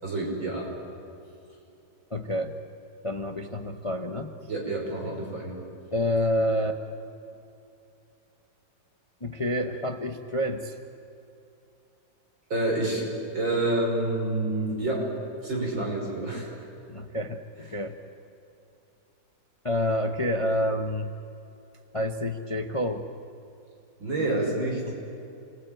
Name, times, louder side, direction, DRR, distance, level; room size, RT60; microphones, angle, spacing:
voice 1, 0.0-0.7 4.5-5.5 12.5-13.1 13.3-15.1 15.4-16.5 24.0-24.8, right 2 dB, 85° right, -1 dB, 6.3 m, -28 dB
voice 2, 2.1-2.6 3.0-4.3 5.9-6.8 9.2-10.8 15.7-15.9 16.3-16.5 16.9-18.0 19.6-21.1 21.9-23.1 24.9-25.0, left 1 dB, 25° left, 6 dB, 0.7 m, -28 dB
27.0 x 21.0 x 9.1 m, 2.7 s
omnidirectional pair, 2.1 m